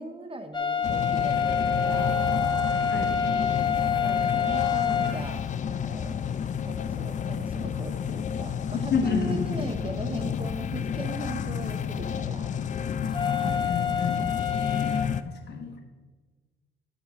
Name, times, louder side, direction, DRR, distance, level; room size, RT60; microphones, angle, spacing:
voice 1, 0.0-2.3 3.9-6.2 6.6-12.6, right 2 dB, 25° right, 7 dB, 0.8 m, -39 dB
sound 1, 0.5-5.2 13.1-15.1, left 6 dB, 25° left, 0.8 m, -27 dB
sound 2, 0.8-15.2, left 8 dB, 40° left, 0.4 m, -30 dB
voice 2, 8.9-9.5 13.4-14.2 15.2-15.8, left 5 dB, 60° left, 2 dB, 1.3 m, -29 dB
10.5 x 6.2 x 3.6 m, 1.3 s
cardioid pair, 90°, 20 cm